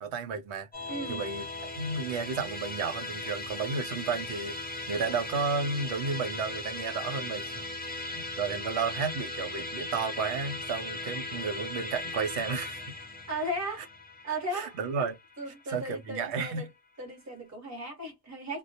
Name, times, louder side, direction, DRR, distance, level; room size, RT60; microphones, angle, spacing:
voice 1, 0.0-0.7 1.1-4.6 4.9-7.6 7.9-12.8 14.5-15.2 15.7-16.7, right 5 dB, 70° right, 0.8 m, -32 dB
Musical instrument, 0.7-16.2, left 2 dB, 10° left, 0.5 m, -38 dB
voice 2, 0.9-1.2 13.3-13.9 14.2-15.1 15.4-16.6 17.0-18.6, right 1 dB, 15° right, 0.9 m, -36 dB
2.3 x 2.1 x 2.5 m
omnidirectional pair, 1.3 m